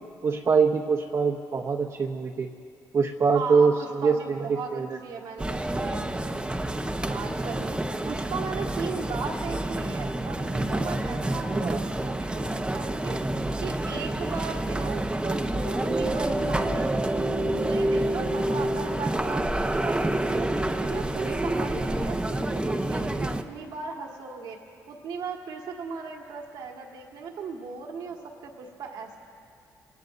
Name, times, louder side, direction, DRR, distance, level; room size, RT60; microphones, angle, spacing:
voice 1, 0.2-2.5 2.9-4.4 4.7-5.0 7.0-7.1 11.5-11.8, right 5 dB, 50° right, -1 dB, 1.0 m, -24 dB
voice 2, 3.3-6.1 7.1-7.8 8.0-13.2 13.6-20.5 20.8-24.6 24.9-29.2, right 5 dB, 80° right, 1 dB, 1.7 m, -37 dB
sound 1, 5.4-23.4, right 1 dB, 15° right, 0.9 m, -28 dB
25.0 x 19.0 x 2.6 m, 2.4 s
supercardioid pair, 65°, 7 cm